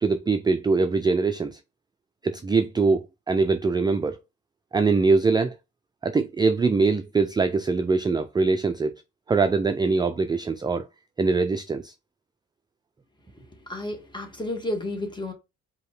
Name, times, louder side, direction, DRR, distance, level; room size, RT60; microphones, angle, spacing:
voice 1, 0.0-1.6 2.2-4.2 4.7-5.6 6.0-8.9 9.3-10.9 11.2-11.9, right 4 dB, 15° right, 0.3 m, -23 dB
voice 2, 13.3-15.3, left 1 dB, 15° left, 1.5 m, -32 dB
4.9 x 2.8 x 3.2 m
cardioid pair, 90°, 30 cm